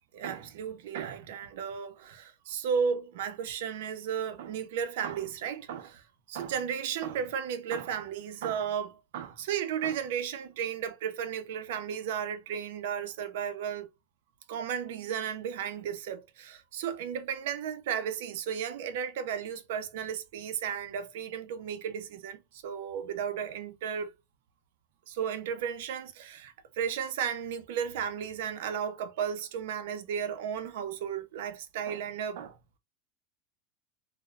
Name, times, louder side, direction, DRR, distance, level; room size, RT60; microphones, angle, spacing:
voice 1, 0.1-13.9 14.5-24.1 25.1-32.8, right 8 dB, 75° right, 0.5 m, -34 dB
3.0 x 2.0 x 2.3 m
supercardioid pair, 160°, 0 cm